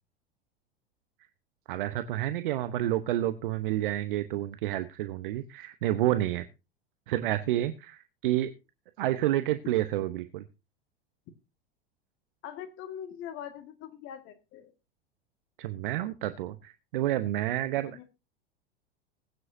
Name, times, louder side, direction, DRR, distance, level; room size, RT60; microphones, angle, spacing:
voice 1, 1.7-6.4 7.1-8.5 9.0-10.4 15.6-18.0, right 14 dB, 60° right, 11 dB, 1.0 m, -29 dB
voice 2, 12.4-14.7 17.9-18.0, left 9 dB, 45° left, 7 dB, 1.9 m, -42 dB
20.5 x 9.7 x 2.7 m, 0.28 s
figure-of-eight pair, 85°, 30 cm